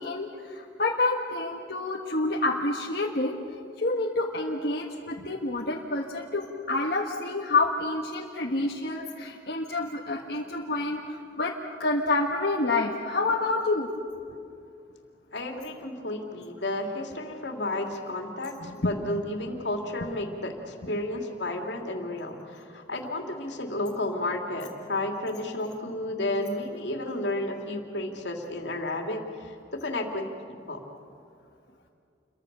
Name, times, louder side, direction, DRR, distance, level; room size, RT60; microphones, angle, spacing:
voice 1, 0.0-3.4 3.8-13.9 18.6-19.1, left 2 dB, 55° left, -1 dB, 1.5 m, -28 dB
voice 2, 15.3-30.8, left 1 dB, 75° left, 3 dB, 2.9 m, -32 dB
29.0 x 23.0 x 6.8 m, 2.4 s
head